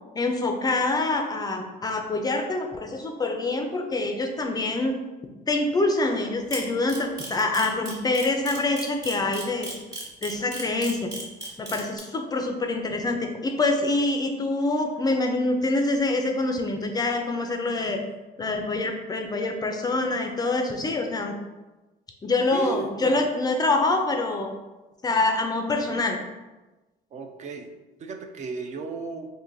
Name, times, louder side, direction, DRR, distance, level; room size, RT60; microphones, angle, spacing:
voice 1, 0.2-4.9 5.5-9.7 10.2-11.1 11.6-18.0 18.4-21.4 22.2-24.5 25.0-26.2, left 2 dB, 25° left, 4 dB, 0.4 m, -25 dB
Camera, 6.5-12.0, right 2 dB, 20° right, 1.1 m, -35 dB
voice 2, 22.5-23.2 27.1-27.7 28.0-29.3, right 4 dB, 45° right, 4 dB, 0.4 m, -34 dB
3.8 x 2.5 x 2.5 m, 1.1 s
cardioid pair, 110°, 17 cm